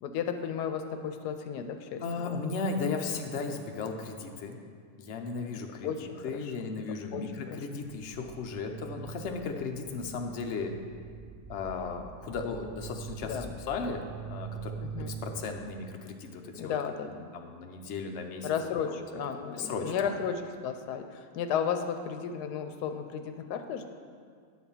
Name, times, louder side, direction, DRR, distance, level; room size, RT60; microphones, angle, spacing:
voice 1, 0.0-2.0 5.5-6.9 7.1-7.6 13.2-13.5 14.8-15.2 16.5-17.2 18.4-23.9, left 7 dB, 85° left, 7 dB, 1.2 m, -34 dB
voice 2, 2.0-4.6 5.0-5.9 6.2-10.7 11.5-14.0 14.3-14.7 15.0-16.7 17.1-18.5 18.9-19.0 19.5-19.9, left 4 dB, 55° left, 3 dB, 0.9 m, -35 dB
sound 1, 7.8-15.4, right 6 dB, 35° right, 0.4 m, -44 dB
9.7 x 4.2 x 7.0 m, 2.1 s
omnidirectional pair, 1.7 m